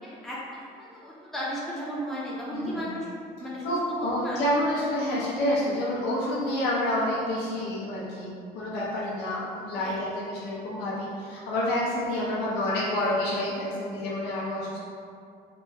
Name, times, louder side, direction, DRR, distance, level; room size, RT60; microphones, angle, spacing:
voice 1, 0.0-3.1 3.4-4.4 9.8-10.0, equal, ahead, -7 dB, 0.6 m, -35 dB
voice 2, 2.5-2.9 3.6-14.8, left 1 dB, 80° left, -6 dB, 0.6 m, -28 dB
2.9 x 2.1 x 3.5 m, 2.4 s
cardioid pair, 110°, 17 cm